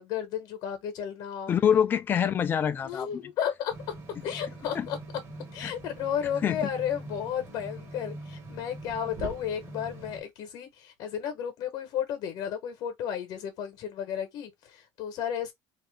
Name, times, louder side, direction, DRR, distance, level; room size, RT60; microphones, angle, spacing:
voice 1, 0.0-1.5 2.8-3.9 4.2-5.0 5.5-15.5, left 9 dB, 55° left, 1.0 m, -33 dB
voice 2, 1.5-3.1 4.7-4.9 5.6-5.7 6.4-6.6, left 8 dB, 25° left, 0.4 m, -25 dB
sound 1, 3.7-10.2, right 2 dB, 35° right, 1.1 m, -42 dB
2.7 x 2.5 x 3.3 m
cardioid pair, 165°, 8 cm